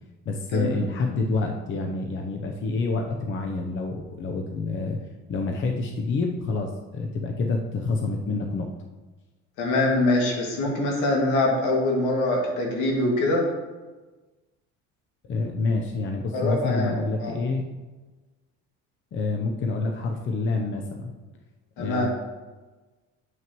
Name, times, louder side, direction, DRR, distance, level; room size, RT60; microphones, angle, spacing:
voice 1, 0.3-5.0 5.3-8.7 15.2-17.6 19.1-21.1 21.8-22.1, left 3 dB, 40° left, 2 dB, 0.7 m, -27 dB
voice 2, 9.6-13.4 16.3-16.9 17.2-17.4 21.8-22.1, left 2 dB, 80° left, -1 dB, 2.2 m, -24 dB
9.2 x 6.0 x 3.0 m, 1.2 s
cardioid pair, 125°, 30 cm